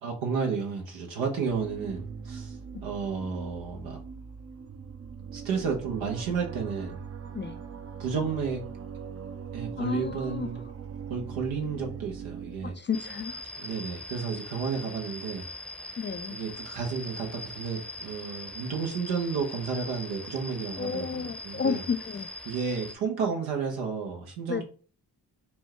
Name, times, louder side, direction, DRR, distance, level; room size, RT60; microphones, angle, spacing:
voice 1, 0.0-4.0 5.3-7.0 8.0-8.6 9.5-10.6 11.1-12.7 13.6-15.5 16.3-21.8 22.4-24.6, right 5 dB, 80° right, 1.2 m, -32 dB
sound 1, 1.5-12.7, right 7 dB, 30° right, 0.6 m, -41 dB
voice 2, 9.8-10.5 12.6-13.4 16.0-16.4 20.8-22.3 24.5-24.6, left 6 dB, 25° left, 0.4 m, -32 dB
sound 2, 12.9-23.0, left 2 dB, ahead, 0.7 m, -41 dB
4.4 x 2.2 x 4.4 m
hypercardioid pair, 40°, 46 cm